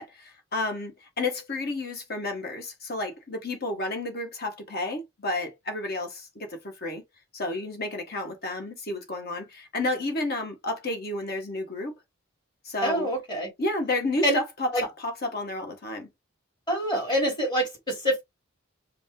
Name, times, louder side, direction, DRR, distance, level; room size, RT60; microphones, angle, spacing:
voice 1, 0.0-7.0 7.3-11.9 12.6-13.1 13.6-16.1, left 2 dB, 45° left, 1.3 m, -31 dB
voice 2, 12.8-13.5 14.2-14.4 14.7-14.8 16.7-18.2, equal, 20° left, 2.9 m, -26 dB
5.1 x 2.1 x 3.7 m
head